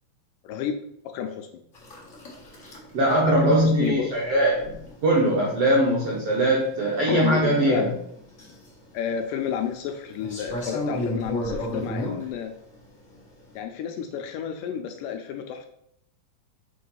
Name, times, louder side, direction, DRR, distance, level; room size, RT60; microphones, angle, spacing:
voice 1, 0.4-0.8 1.1-1.6 3.4-4.1 7.1-7.9 8.9-12.5 13.6-15.7, left 8 dB, 80° left, 5 dB, 2.0 m, -30 dB
sound 1, 1.7-13.6, left 1 dB, 50° left, 0.8 m, -36 dB
voice 2, 2.9-4.8 5.0-7.9, right 1 dB, 75° right, -3 dB, 1.4 m, -21 dB
5.7 x 3.8 x 5.5 m, 0.72 s
omnidirectional pair, 4.1 m